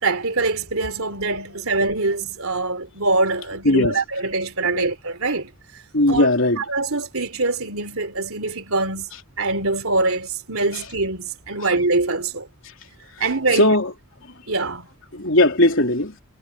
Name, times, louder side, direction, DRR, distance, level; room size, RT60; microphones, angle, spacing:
voice 1, 0.0-5.5 6.1-6.3 6.6-9.1 9.4-12.5 13.2-13.7 14.5-14.9, right 3 dB, 75° right, 3.3 m, -23 dB
voice 2, 3.6-4.0 4.7-4.9 5.9-6.6 10.7-10.8 13.5-13.9 15.1-16.2, left 1 dB, 60° left, 3.5 m, -18 dB
head